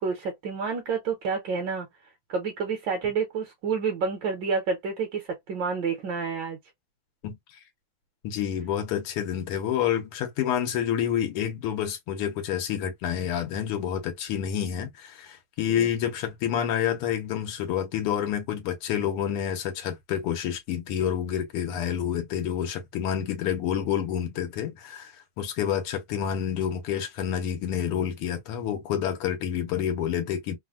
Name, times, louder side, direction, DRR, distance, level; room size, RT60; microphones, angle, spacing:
voice 1, 0.0-1.9 2.3-6.6 15.7-15.9, right 5 dB, 65° right, 1.3 m, -29 dB
voice 2, 8.2-30.6, left 9 dB, 85° left, 1.8 m, -28 dB
3.9 x 2.1 x 2.4 m
omnidirectional pair, 2.4 m